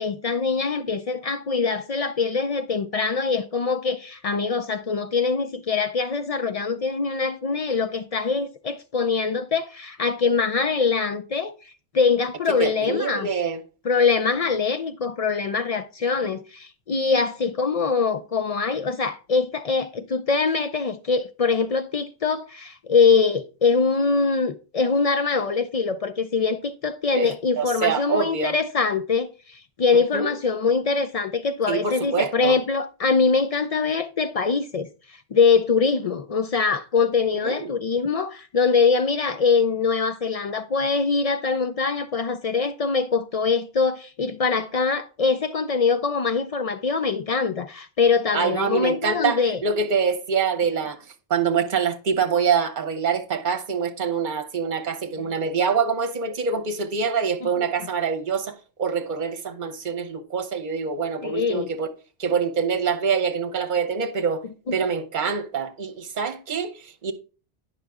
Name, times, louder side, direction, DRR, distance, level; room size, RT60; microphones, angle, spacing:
voice 1, 0.0-11.5 11.9-13.3 13.8-34.9 35.3-49.6 57.4-57.6 61.2-61.7 64.7-64.8, left 5 dB, 60° left, 0.3 m, -23 dB
voice 2, 12.5-13.6 27.1-27.3 27.6-28.5 30.1-30.3 31.7-32.6 37.3-37.7 48.3-51.0 51.3-61.9 62.2-64.4 64.7-67.1, right 6 dB, 45° right, 1.0 m, -25 dB
9.0 x 5.7 x 3.5 m
omnidirectional pair, 1.1 m